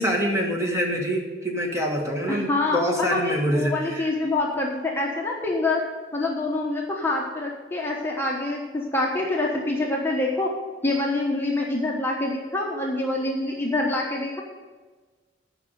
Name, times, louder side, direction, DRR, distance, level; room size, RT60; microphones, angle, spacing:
voice 1, 0.0-4.1, equal, 15° right, 0 dB, 1.6 m, -25 dB
voice 2, 2.3-5.8 6.1-10.5 10.8-14.4, left 2 dB, 15° left, -2 dB, 1.1 m, -26 dB
10.5 x 5.5 x 7.8 m, 1.3 s
head